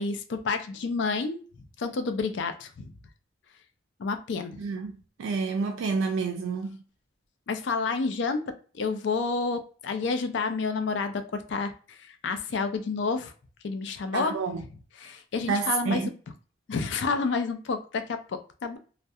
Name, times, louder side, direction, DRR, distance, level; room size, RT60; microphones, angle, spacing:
voice 1, 0.0-1.4 1.8-2.9 4.0-4.6 7.5-13.3 13.6-14.5 15.0-16.0 16.7-18.8, left 4 dB, 65° left, 0.4 m, -29 dB
voice 2, 4.6-4.9 5.2-6.8 14.1-14.6 15.5-16.1, right 4 dB, 85° right, 0.3 m, -29 dB
2.3 x 2.1 x 2.6 m
head